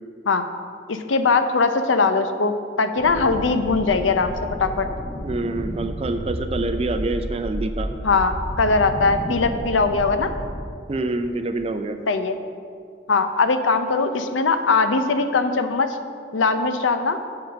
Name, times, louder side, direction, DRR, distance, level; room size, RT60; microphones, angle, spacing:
voice 1, 0.9-4.9 8.0-10.3 12.1-12.3 13.1-15.9 16.3-17.2, left 4 dB, 85° left, 9 dB, 0.6 m, -20 dB
sound 1, 3.0-10.6, equal, ahead, 1.1 m, -31 dB
voice 2, 5.2-7.9 10.9-12.0, right 2 dB, 30° right, 8 dB, 0.4 m, -26 dB
7.9 x 5.8 x 6.4 m, 2.3 s
head